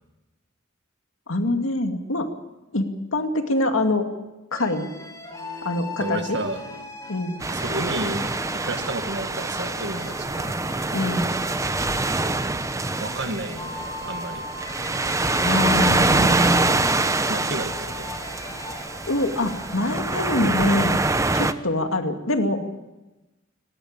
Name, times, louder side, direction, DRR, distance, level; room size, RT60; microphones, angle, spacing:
voice 1, 1.3-2.3 2.7-4.1 4.5-4.9 5.6-6.4 7.1-7.4 10.9-11.4 15.4-16.8 19.1-21.0 21.3-22.6, left 1 dB, 80° left, 5 dB, 2.3 m, -24 dB
sound 1, 4.5-20.5, left 3 dB, 15° left, 5.0 m, -39 dB
voice 2, 6.0-6.6 7.5-10.5 12.1-12.6 13.0-14.4 17.3-18.2, right 2 dB, 60° right, 7 dB, 1.8 m, -32 dB
sound 2, 7.4-21.5, right 2 dB, 15° right, 0.8 m, -25 dB
19.0 x 17.5 x 8.9 m, 1.1 s
head